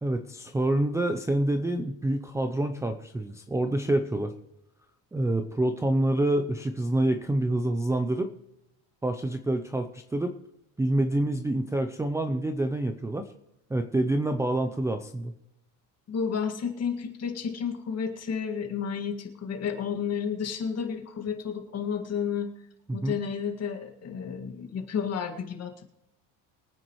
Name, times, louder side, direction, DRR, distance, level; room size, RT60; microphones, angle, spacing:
voice 1, 0.0-4.3 5.1-8.3 9.0-10.3 10.8-13.3 13.7-15.3 22.9-23.2, right 1 dB, 5° right, 7 dB, 0.5 m, -27 dB
voice 2, 16.1-22.5 22.9-25.8, left 7 dB, 35° left, 4 dB, 2.0 m, -31 dB
23.5 x 9.2 x 3.1 m, 0.87 s
cardioid pair, 140°, 42 cm